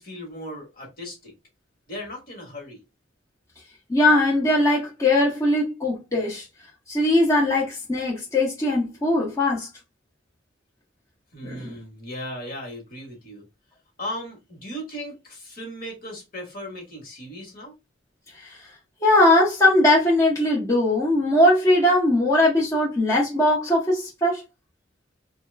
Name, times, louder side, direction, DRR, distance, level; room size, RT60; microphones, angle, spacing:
voice 1, 0.0-1.3 1.9-2.8 11.3-13.4 14.0-17.7, equal, 50° left, 1.3 m, -37 dB
voice 2, 3.9-6.5 6.9-9.7 11.4-11.7 18.3-18.6 19.0-24.4, left 1 dB, 15° left, 0.8 m, -20 dB
3.0 x 2.3 x 3.2 m
head